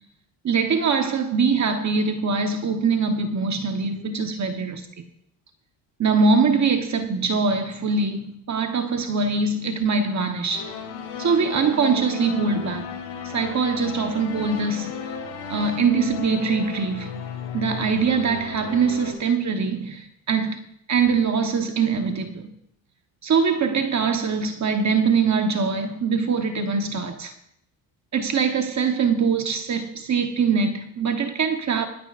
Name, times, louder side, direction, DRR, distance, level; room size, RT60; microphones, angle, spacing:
voice 1, 0.4-5.0 6.0-10.7 11.2-12.9 13.2-14.9 15.5-17.1 17.5-20.6 20.9-22.5 23.2-27.3 28.1-31.9, right 5 dB, 40° right, 1.1 m, -23 dB
sound 1, 10.5-19.1, left 7 dB, 85° left, 2.8 m, -34 dB
23.0 x 10.0 x 2.5 m
cardioid pair, 100°, 44 cm